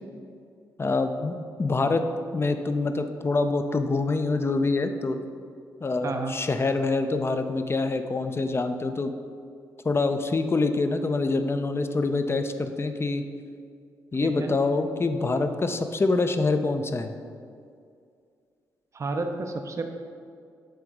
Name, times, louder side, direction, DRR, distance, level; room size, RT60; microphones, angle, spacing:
voice 1, 0.8-2.1 2.3-5.2 5.8-9.1 9.8-13.2 14.1-17.1, left 3 dB, 30° left, 8 dB, 0.5 m, -25 dB
voice 2, 6.0-6.3 14.2-14.5 18.9-19.8, right 3 dB, 40° right, 5 dB, 0.5 m, -30 dB
7.8 x 3.8 x 3.6 m, 2.3 s
supercardioid pair, 45°, 8 cm